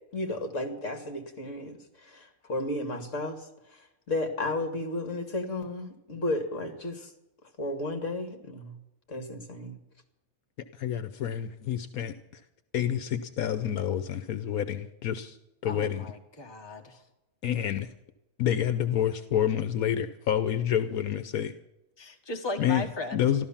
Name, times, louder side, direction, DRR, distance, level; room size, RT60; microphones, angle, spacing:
voice 1, 0.1-1.8 2.0-3.4 4.1-7.1 7.6-8.7 9.1-9.8, left 2 dB, 55° left, 6 dB, 2.5 m, -33 dB
voice 2, 10.7-12.4 12.7-15.4 15.6-16.0 17.4-17.9 18.4-21.5 22.6-23.5, left 10 dB, 80° left, 11 dB, 1.3 m, -28 dB
voice 3, 15.6-17.0 22.0-23.3, left 2 dB, 20° left, 3 dB, 1.6 m, -37 dB
14.0 x 12.5 x 7.2 m, 0.90 s
omnidirectional pair, 1.5 m